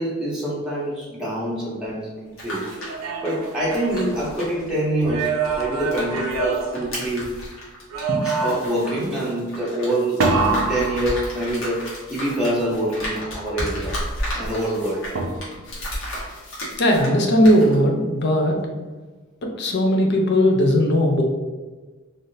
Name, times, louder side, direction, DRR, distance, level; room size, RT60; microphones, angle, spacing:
voice 1, 0.0-2.7 3.2-7.3 8.4-10.2 10.5-14.0 14.3-15.0, right 1 dB, 5° right, -7 dB, 0.8 m, -25 dB
sound 1, 2.2-6.3 6.6-17.2 17.4-17.7, equal, 70° left, 1.2 m, -33 dB
sound 2, 2.7-4.6 5.0-7.5 7.9-8.9 10.2-11.8 15.2-15.8, right 4 dB, 75° right, 0.5 m, -26 dB
voice 2, 16.8-18.6 19.4-21.2, equal, 50° left, 1 dB, 0.5 m, -18 dB
3.4 x 2.5 x 2.7 m, 1.3 s
head